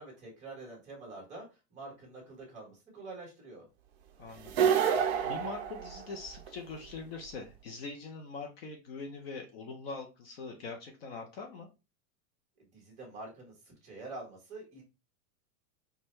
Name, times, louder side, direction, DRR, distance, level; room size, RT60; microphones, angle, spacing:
voice 1, 0.0-3.7 12.7-14.8, right 2 dB, 15° right, -2 dB, 1.2 m, -46 dB
voice 2, 4.2-4.7 5.2-11.7, left 4 dB, 45° left, 3 dB, 0.5 m, -43 dB
sound 1, 4.4-6.5, right 7 dB, 45° right, 0.5 m, -28 dB
4.5 x 2.2 x 3.1 m, 0.28 s
supercardioid pair, 180°, 45 cm